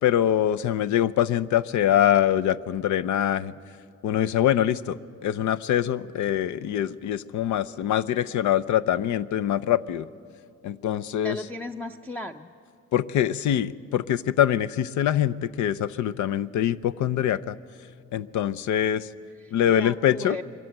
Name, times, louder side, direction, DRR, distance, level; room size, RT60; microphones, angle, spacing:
voice 1, 0.0-3.5 4.0-10.1 10.6-11.4 12.9-17.6 18.1-19.1 19.5-20.4, left 10 dB, 75° left, 14 dB, 0.6 m, -24 dB
voice 2, 11.2-12.5 19.4-20.4, left 1 dB, 5° left, 6 dB, 0.5 m, -36 dB
23.0 x 14.0 x 8.9 m, 2.3 s
cardioid pair, 90°, 30 cm